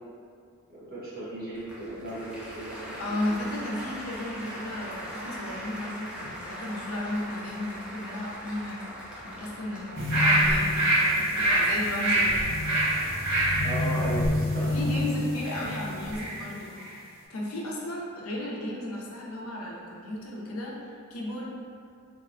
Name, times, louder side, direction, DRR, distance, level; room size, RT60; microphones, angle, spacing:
voice 1, 0.7-3.4 13.6-14.6, right 1 dB, 50° right, -10 dB, 1.0 m, -36 dB
Applause, 1.5-12.1, equal, 5° right, 0.4 m, -41 dB
voice 2, 3.0-12.5 14.6-16.8 17.3-20.8 21.1-21.4, left 1 dB, 75° left, -3 dB, 0.5 m, -34 dB
sound 1, 9.9-16.4 16.8-16.9, equal, 85° right, 1.4 m, -25 dB
3.3 x 2.0 x 2.4 m, 2.3 s
head